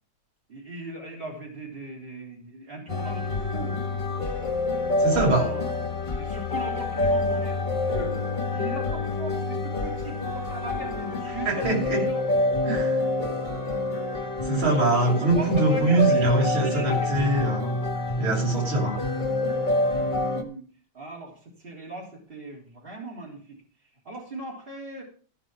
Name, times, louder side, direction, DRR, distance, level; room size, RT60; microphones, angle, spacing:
voice 1, 0.5-4.0 5.1-5.8 6.2-8.2 8.5-12.2 14.7-17.2 17.9-18.1 19.8-20.7 20.9-23.6 24.0-25.0, right 2 dB, 25° right, -2 dB, 3.8 m, -39 dB
sound 1, 2.9-20.4, left 2 dB, 25° left, 1.6 m, -27 dB
voice 2, 5.0-5.5 11.5-12.0 12.7-13.0 14.4-17.8 18.2-19.0, right 2 dB, 85° right, 1 dB, 3.9 m, -23 dB
14.0 x 6.0 x 5.9 m, 0.42 s
omnidirectional pair, 2.2 m